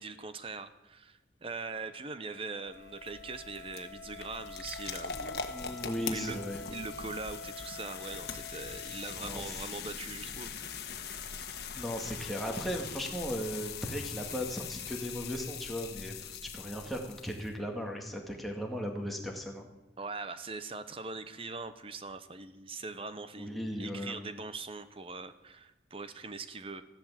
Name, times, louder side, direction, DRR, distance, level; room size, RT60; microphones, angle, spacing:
voice 1, 0.0-5.4 6.1-6.4 6.7-10.5 20.0-26.8, right 3 dB, 30° right, 12 dB, 0.9 m, -42 dB
Wind instrument woodwind instrument, 1.6-9.6, left 4 dB, 85° left, 1.8 m, -48 dB
sound 1, 2.7-17.5, left 6 dB, 60° left, 1.5 m, -42 dB
voice 2, 5.5-6.6 9.2-9.6 11.8-19.7 23.4-24.1, equal, ahead, 1 dB, 2.1 m, -37 dB
14.5 x 12.0 x 7.5 m, 0.99 s
head